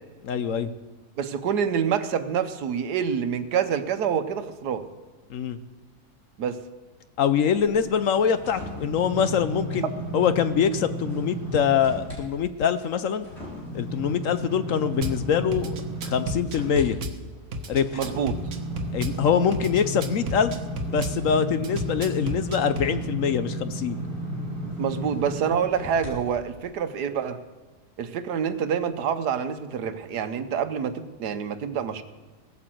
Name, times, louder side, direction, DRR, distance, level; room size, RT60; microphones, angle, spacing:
voice 1, 0.2-0.7 5.3-5.6 7.2-13.3 13.7-15.8 16.0-17.0 17.7-18.0 18.9-20.5 20.9-24.0, left 7 dB, 60° left, 11 dB, 1.0 m, -24 dB
voice 2, 1.2-4.9 6.4-6.6 17.9-18.4 24.8-27.4 28.0-32.0, right 7 dB, 85° right, 10 dB, 1.5 m, -27 dB
sound 1, 7.5-12.2 12.6-26.1 26.6-26.7, right 1 dB, 40° left, 5.2 m, -34 dB
Drum kit / Bass drum, 15.0-15.2 15.5-17.2 17.5-19.2 19.5-21.2 21.6-22.9, right 1 dB, 65° right, 1.6 m, -32 dB
18.0 x 8.6 x 7.7 m, 1.3 s
omnidirectional pair, 1.7 m